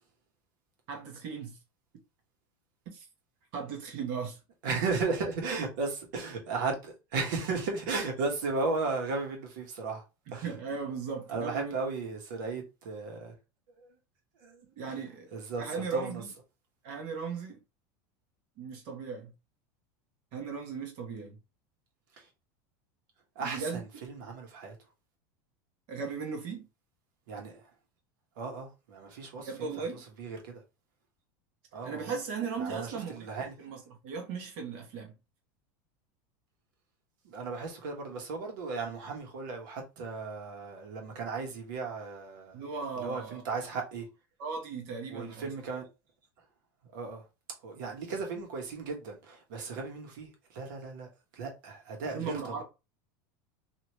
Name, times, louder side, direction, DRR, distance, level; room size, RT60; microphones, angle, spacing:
voice 1, 0.9-1.6 2.8-3.1 3.5-4.4 10.4-11.7 14.8-16.3 16.8-17.6 18.6-19.3 20.3-21.4 23.4-23.8 25.9-26.7 29.4-30.0 31.8-33.3 33.6-35.1 42.5-43.4 44.4-45.5 52.1-52.6, right 5 dB, 55° right, 1.3 m, -37 dB
voice 2, 4.6-10.0 10.3-10.5 11.3-13.3 13.8-13.9 14.4-14.6 14.9-15.0 15.3-16.2 22.2-22.3 23.3-24.7 27.3-27.6 28.4-29.8 30.2-30.6 31.7-32.1 32.6-33.5 37.2-42.6 43.0-44.1 45.1-45.9 46.9-47.2 47.6-51.1 51.3-52.6, right 4 dB, 75° right, 1.4 m, -35 dB
3.0 x 2.8 x 3.0 m
supercardioid pair, 155°, 10 cm